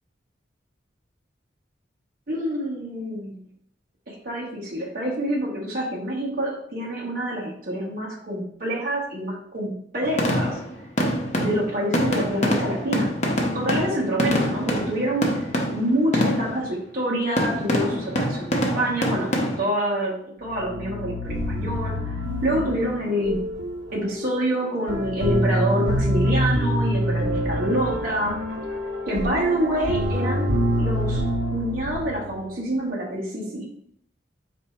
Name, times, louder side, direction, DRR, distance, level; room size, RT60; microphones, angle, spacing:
voice 1, 2.3-3.3 4.1-10.6 11.3-13.3 13.5-15.5 15.7-22.0 22.4-23.5 23.9-28.4 29.1-30.5 30.8-33.7, right 1 dB, 50° right, -4 dB, 1.1 m, -27 dB
sound 1, 10.0-16.7 17.4-19.6, equal, 40° left, 0.8 m, -25 dB
sound 2, 20.5-32.5, equal, 75° right, 0.7 m, -26 dB
4.2 x 2.7 x 4.3 m, 0.66 s
head